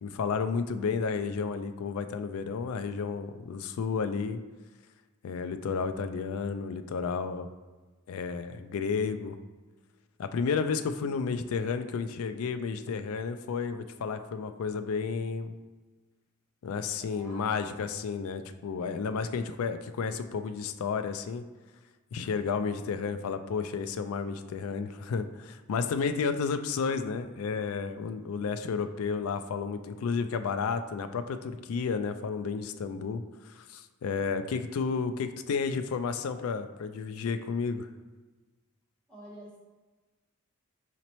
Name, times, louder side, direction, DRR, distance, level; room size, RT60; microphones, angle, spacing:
voice 1, 0.0-4.4 5.2-7.5 8.1-9.4 10.2-15.5 16.6-21.4 22.1-37.9, left 5 dB, 75° left, 10 dB, 0.3 m, -32 dB
voice 2, 11.0-11.6 17.0-17.6 39.1-39.6, equal, 5° left, -7 dB, 1.2 m, -50 dB
4.2 x 4.0 x 3.0 m, 1.3 s
head